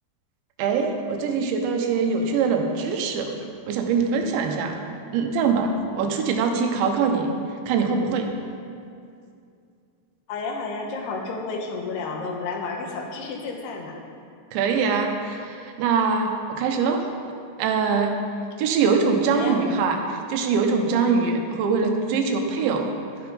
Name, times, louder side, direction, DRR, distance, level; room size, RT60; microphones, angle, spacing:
voice 1, 0.6-3.4 3.7-4.7 5.1-7.3 7.7-8.3 14.5-17.0 17.6-18.2 18.6-22.9, right 5 dB, 85° right, 3 dB, 3.3 m, -23 dB
voice 2, 10.3-13.9 19.4-19.6, left 4 dB, 70° left, 1 dB, 3.0 m, -31 dB
12.0 x 11.0 x 5.2 m, 2.4 s
omnidirectional pair, 5.1 m